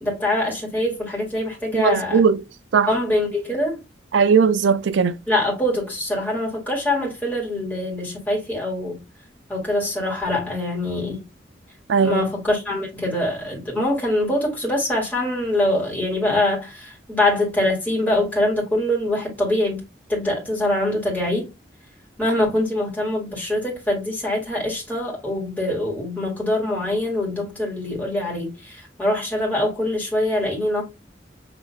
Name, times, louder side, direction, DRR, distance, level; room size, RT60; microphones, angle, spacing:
voice 1, 0.0-2.2 2.9-3.8 5.3-9.0 9.5-11.3 12.0-19.8 20.1-21.5 22.2-30.8, left 1 dB, 10° left, 2.0 m, -24 dB
voice 2, 1.7-2.4 2.7-2.9 4.1-5.1 11.9-12.2, right 6 dB, 85° right, 0.4 m, -18 dB
6.1 x 3.2 x 2.3 m
head